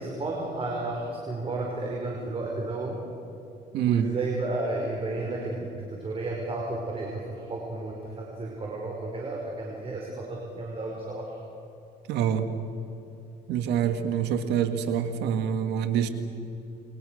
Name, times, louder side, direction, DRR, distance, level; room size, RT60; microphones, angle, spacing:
voice 1, 0.0-3.0 3.9-11.4, right 2 dB, 35° right, -1 dB, 5.3 m, -32 dB
voice 2, 3.7-4.1 12.1-12.5 13.5-16.1, right 9 dB, 85° right, 8 dB, 1.8 m, -26 dB
28.5 x 23.0 x 6.5 m, 2.8 s
cardioid pair, 110°, 17 cm